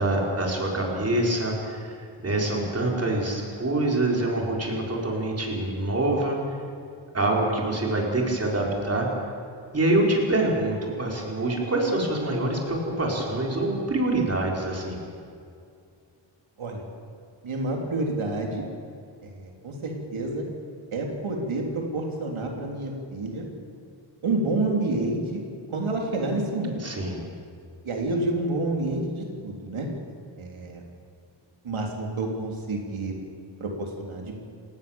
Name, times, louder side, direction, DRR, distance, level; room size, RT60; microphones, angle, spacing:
voice 1, 0.0-6.6 7.1-9.1 9.7-15.0 26.8-27.2, right 2 dB, 30° right, -1 dB, 4.4 m, -25 dB
voice 2, 17.4-18.6 19.2-20.4 20.9-23.5 24.2-25.4 25.7-26.9 27.9-29.9 30.4-30.8 31.6-33.2 33.6-34.4, right 2 dB, 85° right, 1 dB, 3.6 m, -29 dB
29.0 x 18.5 x 7.2 m, 2.4 s
wide cardioid pair, 165°, 47 cm